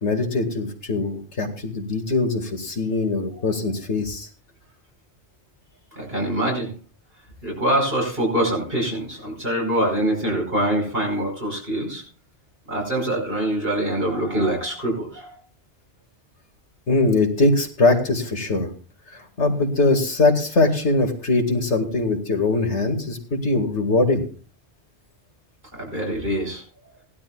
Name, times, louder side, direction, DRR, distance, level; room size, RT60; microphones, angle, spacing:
voice 1, 0.0-4.3 16.9-18.7 19.1-24.2, left 3 dB, 90° left, 3 dB, 2.3 m, -21 dB
voice 2, 5.9-6.7 7.4-12.0 12.7-15.4 25.7-26.6, right 1 dB, 60° right, 0 dB, 5.5 m, -24 dB
19.0 x 12.0 x 2.3 m, 0.39 s
omnidirectional pair, 1.1 m